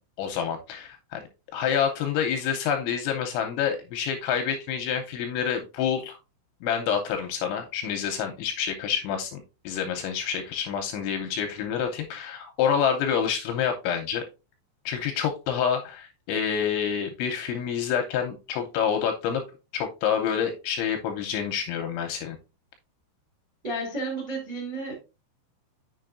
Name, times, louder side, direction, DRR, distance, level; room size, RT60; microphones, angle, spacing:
voice 1, 0.2-1.2 1.5-6.2 6.6-14.2 14.9-19.4 19.7-22.4, left 8 dB, 80° left, 2.8 m, -27 dB
voice 2, 23.6-25.0, right 2 dB, 20° right, 1.2 m, -32 dB
7.2 x 6.8 x 2.5 m
omnidirectional pair, 5.8 m